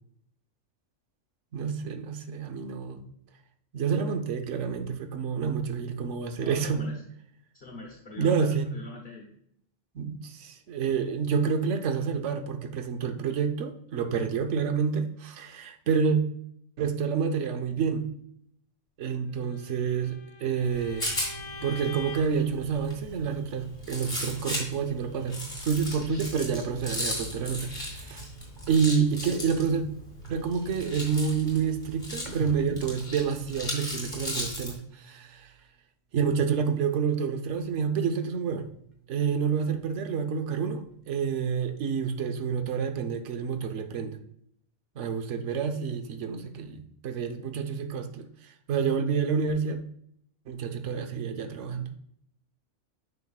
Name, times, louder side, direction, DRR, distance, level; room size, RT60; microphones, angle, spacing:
voice 1, 1.5-3.0 3.7-6.8 8.2-8.7 9.9-16.2 16.8-18.1 19.0-21.1 21.6-28.3 28.7-29.8 30.3-35.5 36.1-38.7 39.1-44.2 45.0-49.8 50.5-51.9, right 6 dB, 70° right, 6 dB, 1.1 m, -28 dB
voice 2, 6.4-7.0 7.5-9.3, left 2 dB, 50° left, -2 dB, 1.3 m, -42 dB
Bowed string instrument, 19.5-22.5, left 4 dB, 80° left, 1.3 m, -44 dB
Rattle, 20.6-34.7, left 1 dB, 20° left, 2.5 m, -37 dB
sound 1, 32.2-35.8 36.1-37.9 38.2-40.1 40.4-42.3, right 2 dB, 40° right, 0.9 m, -47 dB
9.3 x 5.8 x 2.3 m, 0.70 s
omnidirectional pair, 1.3 m